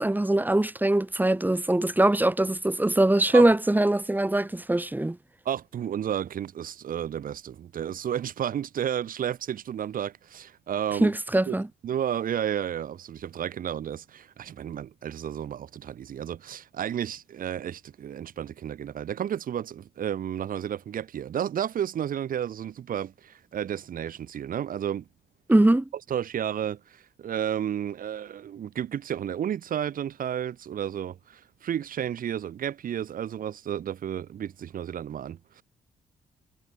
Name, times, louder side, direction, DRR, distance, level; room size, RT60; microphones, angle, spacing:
voice 1, 0.0-5.2 11.0-11.7 25.5-25.9, right 1 dB, 10° right, 1.7 m, -22 dB
voice 2, 5.4-11.2 11.5-11.6 11.8-25.0 26.1-35.6, right 9 dB, 65° right, 4.4 m, -32 dB
supercardioid pair, 55°, 15 cm